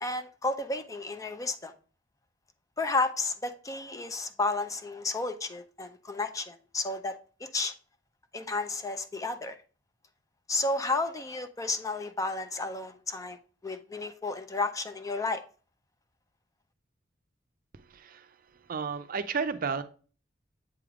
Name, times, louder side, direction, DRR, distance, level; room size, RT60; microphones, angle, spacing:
voice 1, 0.0-1.7 2.8-7.7 8.3-9.6 10.5-13.4 13.6-15.4, left 3 dB, 15° left, 0.4 m, -32 dB
voice 2, 17.9-18.3 18.7-19.8, right 5 dB, 50° right, 0.5 m, -32 dB
7.7 x 3.4 x 3.6 m
head